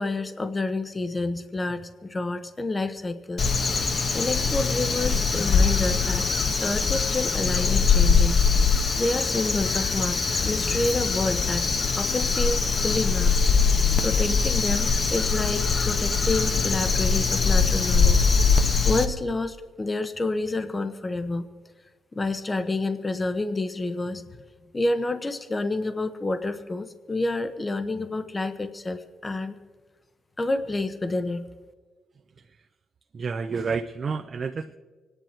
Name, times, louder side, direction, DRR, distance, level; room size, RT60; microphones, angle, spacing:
voice 1, 0.0-3.5 3.8-6.2 6.6-8.4 8.6-11.7 12.0-18.3 18.8-21.4 22.1-24.3 24.7-29.5 30.4-31.5, left 2 dB, 25° left, 10 dB, 0.9 m, -29 dB
Crow, 3.4-19.0, left 5 dB, 45° left, 1.1 m, -22 dB
voice 2, 33.1-34.8, right 5 dB, 45° right, 6 dB, 0.6 m, -29 dB
25.0 x 10.0 x 4.5 m, 1.4 s
cardioid pair, 90°, 0 cm